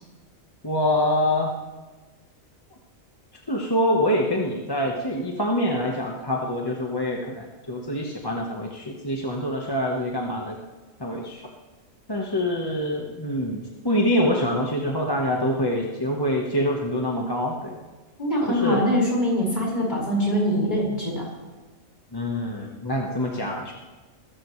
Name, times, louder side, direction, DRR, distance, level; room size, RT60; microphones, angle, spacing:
voice 1, 0.6-1.5 3.5-10.6 11.0-11.5 12.1-17.7 18.4-18.8 22.1-23.7, left 1 dB, 20° left, -1 dB, 1.3 m, -25 dB
voice 2, 18.2-21.3, equal, 35° left, -4 dB, 5.5 m, -23 dB
21.5 x 14.0 x 3.3 m, 1.2 s
omnidirectional pair, 1.4 m